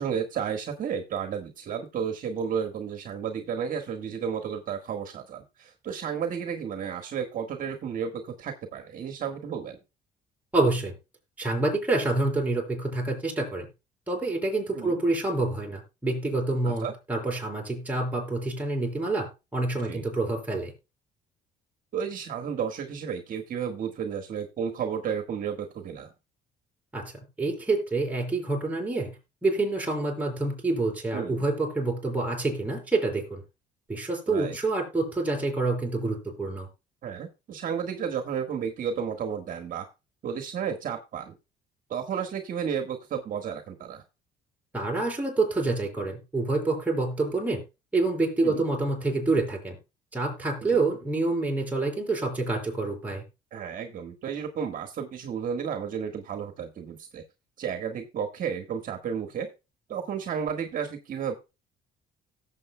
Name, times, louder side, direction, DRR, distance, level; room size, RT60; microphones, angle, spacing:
voice 1, 0.0-9.8 14.7-15.0 16.6-16.9 19.8-20.0 21.9-26.1 31.1-31.4 34.3-34.6 37.0-39.9 40.2-41.3 41.9-44.0 48.4-48.6 50.7-50.8 53.5-57.2 57.6-59.5 59.9-61.3, right 7 dB, 55° right, 6 dB, 1.6 m, -32 dB
voice 2, 10.5-10.9 11.4-13.7 14.1-20.7 26.9-27.1 27.4-29.2 29.4-33.4 33.9-36.7 44.7-47.6 47.9-49.8 50.1-53.2, right 2 dB, 10° right, -1 dB, 5.7 m, -27 dB
17.5 x 7.7 x 2.2 m, 0.27 s
cardioid pair, 110°, 17 cm